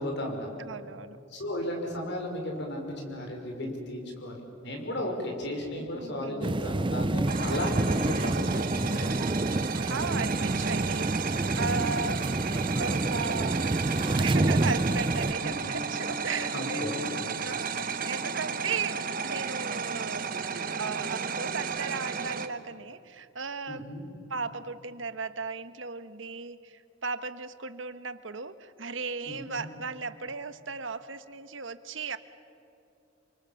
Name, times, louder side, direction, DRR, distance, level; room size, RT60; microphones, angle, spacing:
voice 1, 0.0-0.5 1.3-9.2 11.6-11.9 15.4-15.5 16.5-17.0 23.7-24.1 29.3-29.7, left 1 dB, 65° left, 2 dB, 5.7 m, -35 dB
voice 2, 0.6-1.2 5.8-6.4 9.9-12.3 12.8-13.8 14.2-17.0 17.4-20.3 20.7-23.9 24.3-32.2, right 4 dB, 80° right, 12 dB, 1.3 m, -36 dB
sound 1, 6.4-15.3, right 2 dB, 25° right, 0.6 m, -28 dB
sound 2, 7.3-22.5, right 5 dB, 50° right, 1.3 m, -33 dB
sound 3, 15.0-21.2 21.6-21.7, left 3 dB, 10° right, 7.1 m, -45 dB
28.0 x 24.5 x 7.2 m, 2.8 s
head